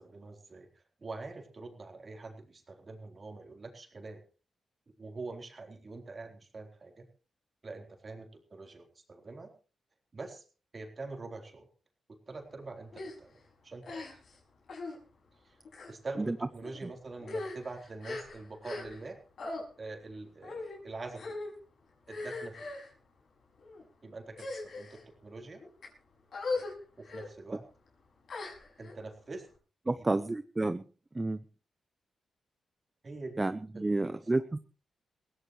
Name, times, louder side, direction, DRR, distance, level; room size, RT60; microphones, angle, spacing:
voice 1, 0.0-4.2 5.0-7.1 7.6-9.5 10.1-10.4 10.7-11.7 12.3-14.2 15.4-15.6 15.9-19.2 19.8-21.4 22.1-22.7 24.0-25.6 27.0-27.7 28.8-29.5 29.9-30.1 33.0-33.4 33.7-34.3, right 3 dB, 40° right, 3 dB, 3.8 m, -45 dB
sound 1, 12.9-13.2 13.8-14.4 14.7-15.0 15.7-15.9 16.6-16.8 17.2-19.1 19.4-19.6 20.4-20.8 21.2-21.5 22.1-22.9 23.6-23.8 24.3-25.0 25.6-25.9 26.3-26.7 27.0-27.3 28.3-28.9, left 3 dB, 65° left, 6.0 m, -39 dB
voice 2, 29.9-30.8 31.2-31.4 33.4-34.6, right 2 dB, 25° right, 12 dB, 0.7 m, -30 dB
21.0 x 16.0 x 3.2 m, 0.37 s
cardioid pair, 65°, 0 cm